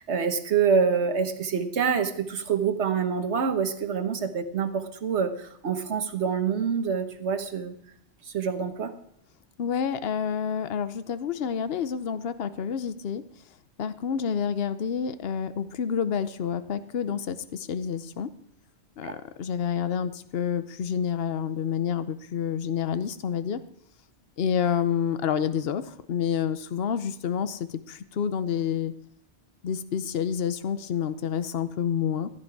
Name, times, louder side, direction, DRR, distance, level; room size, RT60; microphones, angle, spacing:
voice 1, 0.0-7.8 8.3-8.9 19.0-19.2, right 6 dB, 75° right, 8 dB, 1.4 m, -26 dB
voice 2, 9.6-13.2 13.8-18.3 19.0-23.6 24.4-28.9 29.6-32.3, left 8 dB, 60° left, 12 dB, 1.0 m, -28 dB
15.0 x 10.5 x 4.7 m, 0.70 s
omnidirectional pair, 1.2 m